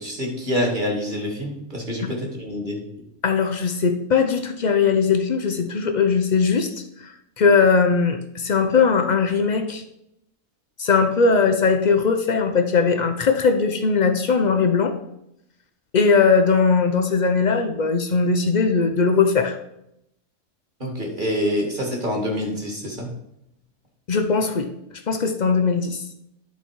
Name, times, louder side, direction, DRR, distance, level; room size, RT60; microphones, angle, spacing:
voice 1, 0.0-2.8 20.8-23.1, equal, 30° right, 1 dB, 1.9 m, -26 dB
voice 2, 3.2-9.8 10.8-14.9 15.9-19.6 24.1-24.7 25.1-26.0, left 5 dB, 70° left, 6 dB, 0.4 m, -19 dB
10.5 x 4.1 x 4.5 m, 0.79 s
omnidirectional pair, 1.6 m